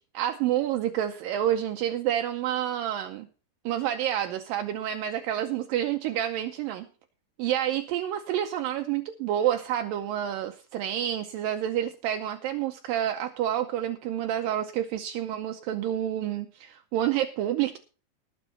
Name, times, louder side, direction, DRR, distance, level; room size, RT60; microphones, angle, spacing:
voice 1, 0.1-3.3 3.7-6.9 7.4-17.8, right 11 dB, 80° right, 6 dB, 2.2 m, -28 dB
19.5 x 7.1 x 4.1 m, 0.37 s
omnidirectional pair, 4.5 m